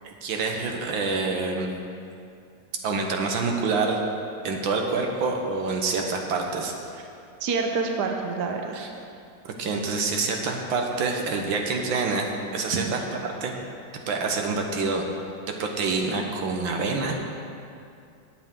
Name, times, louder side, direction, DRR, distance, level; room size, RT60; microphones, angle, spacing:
voice 1, 0.0-1.7 2.8-4.0 4.4-6.7 8.7-8.9 9.6-13.0 13.4-13.5 14.1-15.0 15.6-17.2, right 4 dB, 85° right, 2 dB, 1.8 m, -26 dB
voice 2, 7.4-8.8 12.7-12.9, right 4 dB, 65° right, 3 dB, 1.4 m, -27 dB
18.0 x 7.5 x 3.7 m, 2.5 s
omnidirectional pair, 2.1 m